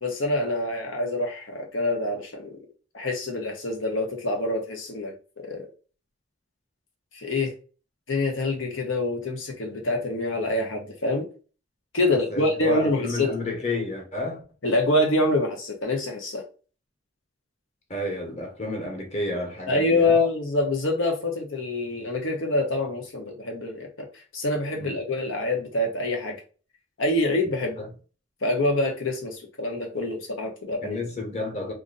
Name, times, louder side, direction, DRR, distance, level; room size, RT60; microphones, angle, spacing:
voice 1, 0.0-2.6 2.9-5.7 7.1-7.5 8.1-11.3 11.9-13.4 14.6-16.4 19.7-24.1 24.3-26.4 27.0-27.8 28.4-31.0, left 2 dB, 80° left, 1.1 m, -26 dB
voice 2, 12.1-14.4 17.9-20.2 24.8-25.0 27.8-27.9 30.8-31.7, left 2 dB, 35° left, 1.2 m, -31 dB
2.9 x 2.6 x 3.9 m
head